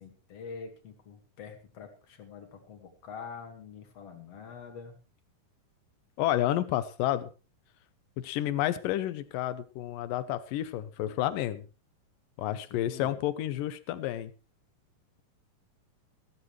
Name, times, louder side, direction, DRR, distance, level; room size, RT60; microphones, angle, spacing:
voice 1, 0.0-5.0 12.5-13.1, left 5 dB, 50° left, 6 dB, 2.8 m, -45 dB
voice 2, 6.2-7.3 8.2-11.7 12.4-14.3, left 13 dB, 80° left, 14 dB, 2.5 m, -30 dB
15.0 x 14.5 x 3.2 m, 0.32 s
omnidirectional pair, 4.0 m